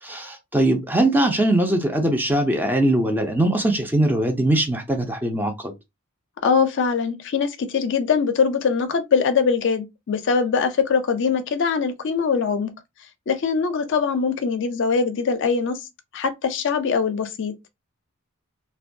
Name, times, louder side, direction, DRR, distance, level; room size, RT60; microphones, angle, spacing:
voice 1, 0.0-5.7, right 1 dB, 10° right, 0.4 m, -21 dB
voice 2, 6.4-12.7 13.3-15.8 16.1-17.5, left 5 dB, 55° left, 0.4 m, -22 dB
2.5 x 2.2 x 2.6 m
head